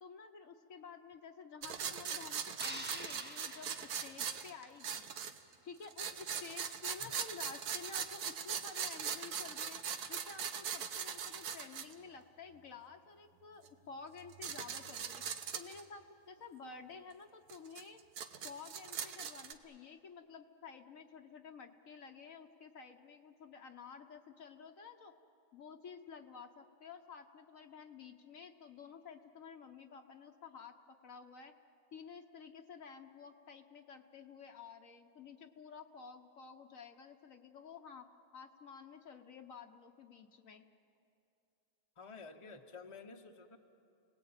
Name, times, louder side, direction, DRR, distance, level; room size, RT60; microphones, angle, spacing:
voice 1, 0.0-5.1 5.6-9.8 10.1-15.2 15.5-18.0 18.4-25.1 25.5-30.7 31.0-31.5 31.9-38.1 38.3-40.7, left 5 dB, 60° left, 5 dB, 1.4 m, -52 dB
sound 1, 1.6-5.5 5.8-11.9 13.7-13.8 14.2-15.8 17.5-19.5, right 7 dB, 85° right, 1.6 m, -41 dB
sound 2, 2.6-4.9, equal, 5° right, 1.2 m, -48 dB
voice 2, 42.0-43.6, left 4 dB, 20° left, 4 dB, 1.1 m, -51 dB
30.0 x 19.0 x 8.9 m, 2.7 s
omnidirectional pair, 1.6 m